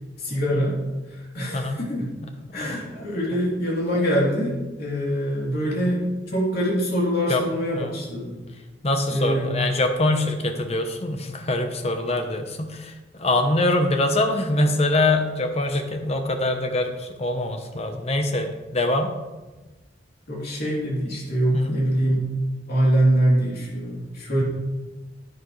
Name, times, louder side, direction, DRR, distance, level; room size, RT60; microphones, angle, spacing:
voice 1, 0.2-0.8 1.1-2.1 2.5-8.3 9.1-9.5 20.3-22.2 22.7-24.4, equal, 55° left, -5 dB, 3.3 m, -24 dB
voice 2, 2.2-2.8 7.3-7.4 7.7-7.9 8.8-12.9 13.2-19.1 21.5-21.8, left 2 dB, 35° left, 6 dB, 1.0 m, -24 dB
10.5 x 9.6 x 3.3 m, 1.2 s
head